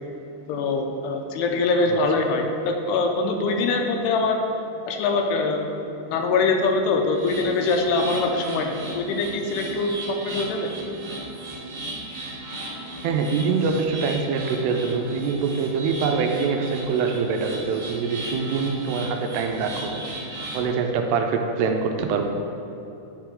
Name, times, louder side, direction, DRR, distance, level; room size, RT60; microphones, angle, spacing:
voice 1, 0.5-4.4 4.9-5.6 6.0-10.7, left 3 dB, 85° left, 4 dB, 2.7 m, -23 dB
sound 1, 7.1-20.7, right 1 dB, 65° right, 1.4 m, -36 dB
voice 2, 13.0-20.0 20.5-22.2, right 5 dB, 85° right, 4 dB, 2.5 m, -24 dB
10.5 x 4.4 x 3.7 m, 2.9 s
omnidirectional pair, 4.7 m